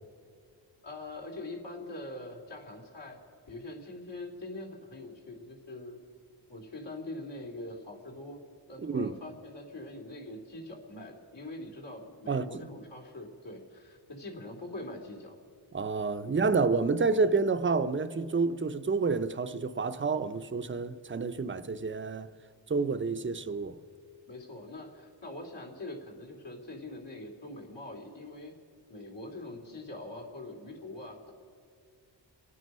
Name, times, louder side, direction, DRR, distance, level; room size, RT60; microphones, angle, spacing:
voice 1, 0.8-3.2 3.5-6.0 6.5-8.4 8.7-15.3 16.2-16.4 24.3-28.5 28.9-31.3, left 2 dB, 70° left, 3.2 m, -43 dB
voice 2, 8.8-9.1 12.3-12.7 15.7-22.3 22.7-23.8, right 4 dB, 25° right, 0.7 m, -29 dB
27.5 x 9.5 x 5.5 m
wide cardioid pair, 75°, 45 cm